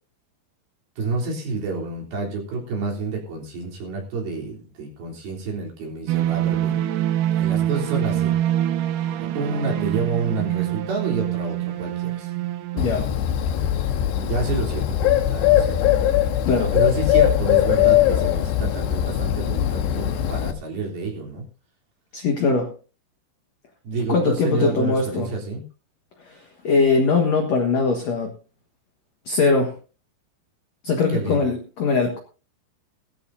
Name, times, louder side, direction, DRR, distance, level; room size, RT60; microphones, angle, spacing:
voice 1, 1.0-6.8 7.3-8.4 9.3-12.3 14.2-15.0 15.3-15.8 16.7-21.5 23.8-25.6 31.1-31.4, right 3 dB, 55° right, -1 dB, 5.2 m, -29 dB
sound 1, 6.1-12.9, right 12 dB, 85° right, 1.9 m, -24 dB
voice 2, 12.7-13.1 16.5-16.7 22.1-22.7 24.1-25.3 26.3-28.3 29.3-29.7 30.8-32.2, left 4 dB, 55° left, 3 dB, 1.9 m, -21 dB
Bird, 12.8-20.5, left 11 dB, 75° left, 3.2 m, -20 dB
17.5 x 13.5 x 2.7 m, 0.35 s
omnidirectional pair, 5.2 m